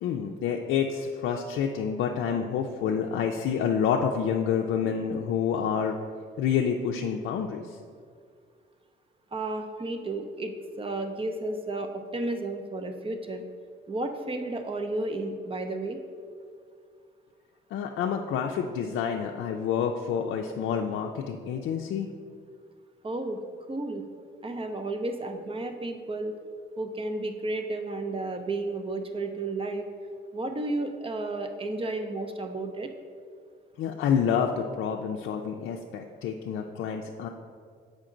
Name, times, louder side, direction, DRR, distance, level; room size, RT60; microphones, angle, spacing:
voice 1, 0.0-6.0 6.4-7.8 17.7-22.1 33.8-37.3, left 7 dB, 80° left, 2 dB, 0.4 m, -28 dB
voice 2, 9.3-13.4 13.9-16.0 23.0-23.4 23.7-24.0 24.4-26.4 26.8-29.8 30.3-32.9, right 2 dB, 25° right, 6 dB, 0.7 m, -32 dB
7.3 x 5.1 x 3.8 m, 2.1 s
cardioid pair, 90°, 20 cm